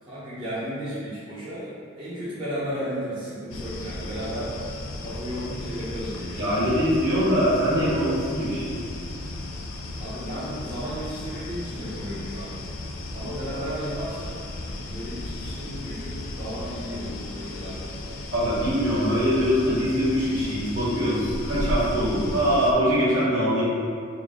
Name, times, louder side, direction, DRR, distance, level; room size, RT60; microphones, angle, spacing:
voice 1, 0.0-6.5 9.9-12.6 13.1-14.4 14.8-18.0, equal, 25° right, -13 dB, 0.7 m, -34 dB
sound 1, 3.5-22.7, left 1 dB, 85° left, 0.4 m, -35 dB
voice 2, 6.4-8.8 18.3-23.6, equal, 75° right, -10 dB, 1.5 m, -23 dB
3.7 x 2.1 x 3.5 m, 2.2 s
head